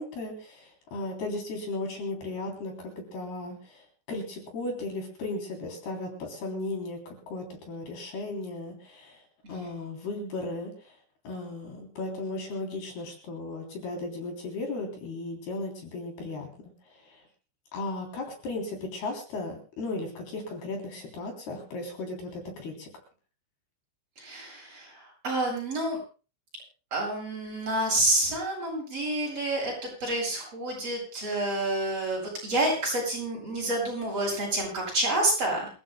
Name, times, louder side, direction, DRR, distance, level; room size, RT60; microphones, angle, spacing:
voice 1, 0.0-9.2 9.5-11.0 11.2-17.2 17.7-22.9, left 2 dB, 60° left, 2 dB, 5.1 m, -36 dB
voice 2, 9.4-9.8 24.2-26.0 26.9-35.7, right 1 dB, 30° right, -3 dB, 9.0 m, -29 dB
27.5 x 15.0 x 2.2 m, 0.35 s
omnidirectional pair, 5.4 m